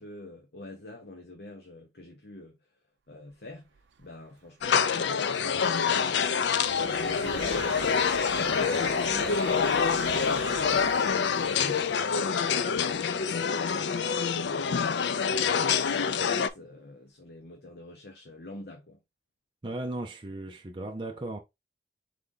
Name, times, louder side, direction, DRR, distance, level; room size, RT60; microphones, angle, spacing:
voice 1, 0.0-2.6 3.1-3.7 4.0-6.4 6.7-12.0 12.3-14.1 14.4-19.0, left 2 dB, 65° left, 0.9 m, -45 dB
Train, 3.8-4.0 4.3-4.5 4.8-15.0, right 6 dB, 80° right, 0.4 m, -43 dB
sound 1, 4.6-16.5, left 6 dB, 85° left, 0.4 m, -26 dB
voice 2, 19.6-21.4, right 2 dB, 30° right, 0.5 m, -36 dB
3.8 x 3.3 x 3.8 m
head